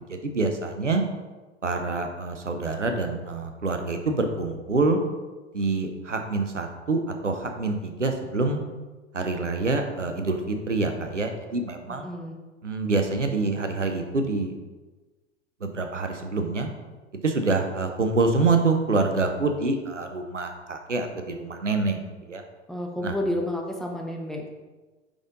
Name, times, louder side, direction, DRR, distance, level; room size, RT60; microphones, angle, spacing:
voice 1, 0.1-1.0 1.6-5.0 5.5-8.6 9.1-12.1 12.6-14.5 15.6-16.7 17.2-22.4 23.0-23.2, right 3 dB, 85° right, 5 dB, 0.8 m, -26 dB
voice 2, 12.0-12.4 22.7-24.5, left 1 dB, ahead, 0 dB, 0.6 m, -30 dB
5.4 x 5.0 x 3.8 m, 1.2 s
figure-of-eight pair, 90°, 36 cm